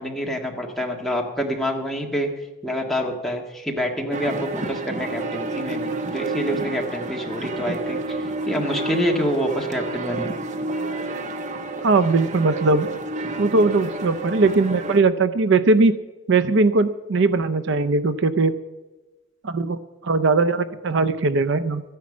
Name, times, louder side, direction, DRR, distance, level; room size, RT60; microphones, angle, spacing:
voice 1, 0.0-2.3 2.6-8.0 8.5-10.3, equal, ahead, 0 dB, 1.7 m, -26 dB
sound 1, 4.1-15.0, right 2 dB, 35° right, 1.0 m, -30 dB
voice 2, 11.8-12.9 13.4-15.9 16.3-18.6 19.4-21.8, right 3 dB, 60° right, 13 dB, 0.5 m, -19 dB
14.5 x 10.5 x 7.3 m, 1.2 s
head